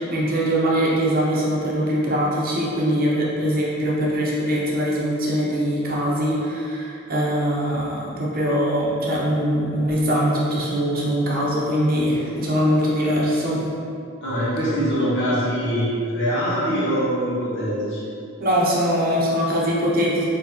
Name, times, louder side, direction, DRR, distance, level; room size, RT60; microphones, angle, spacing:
voice 1, 0.0-13.6 18.4-20.3, equal, 50° right, -5 dB, 0.8 m, -22 dB
voice 2, 14.2-18.1, equal, 65° left, -10 dB, 1.5 m, -23 dB
4.5 x 2.9 x 3.0 m, 2.6 s
head